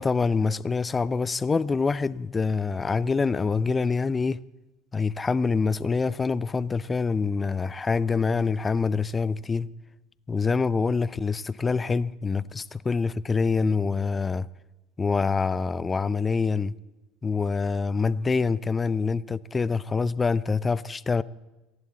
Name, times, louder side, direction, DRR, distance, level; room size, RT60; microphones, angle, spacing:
voice 1, 0.0-4.4 4.9-9.7 10.3-14.5 15.0-16.7 17.2-21.2, left 4 dB, 25° left, 0.6 m, -25 dB
29.0 x 11.0 x 4.1 m
hypercardioid pair, 75°, 0 cm